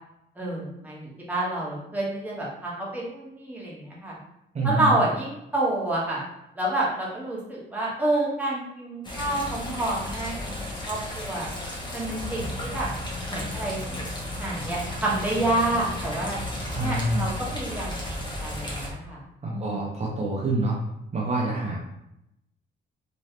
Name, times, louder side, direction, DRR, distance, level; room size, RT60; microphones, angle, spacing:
voice 1, 0.4-4.2 4.6-6.2 6.6-10.5 10.8-11.5 11.9-12.9 13.3-14.0 14.4-16.4 16.8-19.2 19.5-19.8, right 1 dB, 10° right, -5 dB, 1.2 m, -28 dB
voice 2, 4.5-5.0 16.7-17.3 19.4-20.8 21.1-21.8, right 2 dB, 35° right, -3 dB, 0.7 m, -26 dB
sound 1, 9.0-18.9, left 1 dB, 20° left, 0.9 m, -34 dB
3.1 x 3.0 x 2.8 m, 0.83 s
cardioid pair, 90°, 20 cm